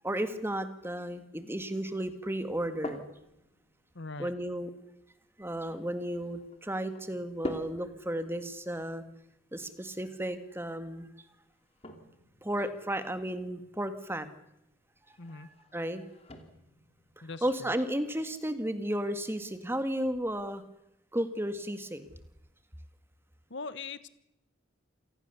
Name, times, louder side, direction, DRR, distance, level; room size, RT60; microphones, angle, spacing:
voice 1, 0.0-3.0 4.2-4.7 5.4-9.0 9.5-11.1 12.4-14.3 15.1-16.1 17.4-20.6 21.1-22.1, right 1 dB, 10° right, 10 dB, 1.8 m, -34 dB
sound 1, 2.4-20.5, left 1 dB, 30° left, 2.9 m, -49 dB
voice 2, 3.9-4.3 15.2-15.5 17.2-17.7 23.5-24.1, left 4 dB, 60° left, 15 dB, 1.2 m, -41 dB
28.0 x 19.0 x 7.0 m, 0.85 s
head